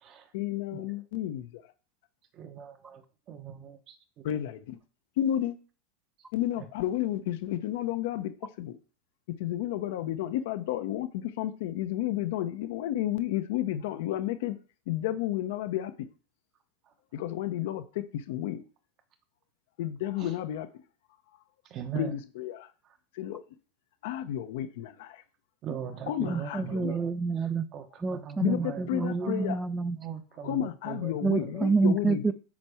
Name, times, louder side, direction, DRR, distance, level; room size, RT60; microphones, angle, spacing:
voice 1, 0.3-1.6 4.2-4.8 5.2-5.6 6.3-8.8 9.4-14.6 14.9-16.1 17.1-18.6 19.8-20.7 21.9-22.7 23.1-23.4 24.0-25.2 26.1-27.0 28.4-29.6 30.4-32.3, left 12 dB, 70° left, 0.8 m, -32 dB
voice 2, 2.4-3.0 3.3-4.2 20.2-20.3 21.7-22.1 25.6-27.1 27.7-29.5 30.0-31.1 31.4-31.6, right 8 dB, 40° right, 1.1 m, -40 dB
voice 3, 26.3-27.7 28.0-30.0 31.2-32.3, right 4 dB, 15° right, 0.6 m, -28 dB
7.3 x 4.4 x 4.9 m
hypercardioid pair, 105°, 0 cm